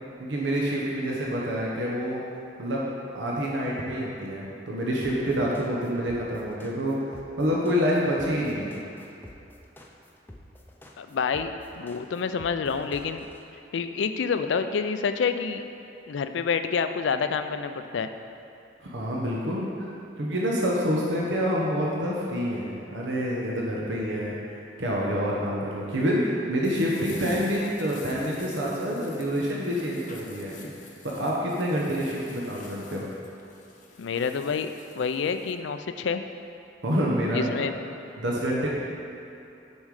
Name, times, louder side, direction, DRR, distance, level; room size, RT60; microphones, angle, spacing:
voice 1, 0.2-2.2 2.6-2.8 3.1-7.0 7.4-8.8 18.8-19.9 20.2-30.6 31.0-33.0 36.8-37.6 38.2-38.7, equal, 80° right, -4 dB, 1.0 m, -27 dB
sound 1, 5.0-13.4, left 1 dB, 10° left, 0.6 m, -47 dB
voice 2, 11.0-13.3 13.7-15.6 16.1-18.1 34.0-36.2 37.3-37.8, left 5 dB, 75° left, 9 dB, 0.4 m, -28 dB
sound 2, 26.6-35.5, left 3 dB, 45° left, 0.8 m, -47 dB
7.1 x 5.4 x 4.8 m, 2.8 s
head